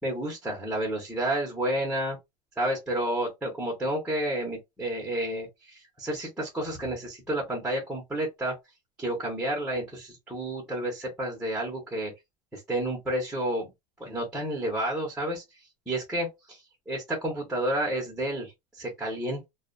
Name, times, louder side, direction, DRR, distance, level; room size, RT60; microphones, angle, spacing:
voice 1, 0.0-2.2 2.6-8.6 9.0-12.1 12.5-13.7 14.0-15.4 15.9-19.4, right 1 dB, 5° right, 0.7 m, -30 dB
2.4 x 2.1 x 2.4 m
supercardioid pair, 155°, 21 cm